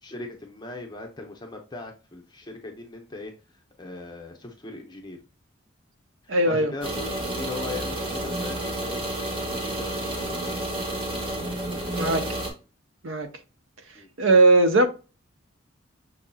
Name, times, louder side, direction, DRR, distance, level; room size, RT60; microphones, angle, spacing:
voice 1, 0.0-5.2 6.2-9.0 9.5-10.6 13.9-14.1, left 3 dB, 20° left, 0.7 m, -39 dB
voice 2, 6.3-6.7 12.0-12.3 13.0-13.3 14.2-14.9, right 2 dB, 70° right, 0.7 m, -19 dB
sound 1, 6.8-12.5, right 1 dB, 25° right, 1.0 m, -30 dB
6.0 x 2.7 x 2.2 m
head